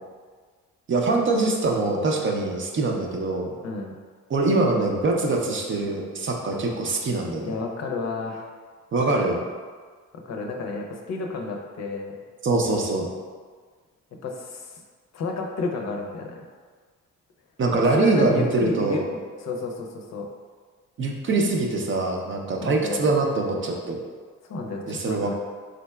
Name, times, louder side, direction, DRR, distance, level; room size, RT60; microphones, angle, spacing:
voice 1, 0.9-3.5 4.3-7.6 8.9-9.4 12.4-13.1 17.6-19.0 21.0-24.0 24.9-25.3, right 3 dB, 40° right, 1 dB, 0.5 m, -23 dB
voice 2, 3.6-4.0 7.4-8.5 10.3-12.2 14.2-14.8 15.1-16.4 17.8-20.3 22.6-23.0 24.5-25.3, left 3 dB, 60° left, 1 dB, 0.6 m, -31 dB
3.9 x 3.3 x 2.2 m, 1.6 s
cardioid pair, 90°, 30 cm